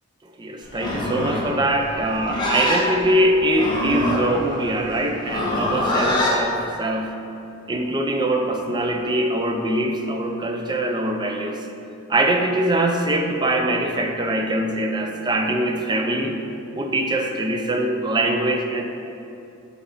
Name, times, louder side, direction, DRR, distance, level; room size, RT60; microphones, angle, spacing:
voice 1, 0.4-7.2 7.7-11.6 12.1-16.3 16.8-18.8, right 1 dB, 20° right, 3 dB, 0.5 m, -23 dB
Livestock farm animals working animals, 0.7-6.4, left 1 dB, 20° left, 1.1 m, -24 dB
8.1 x 4.2 x 4.0 m, 2.8 s
head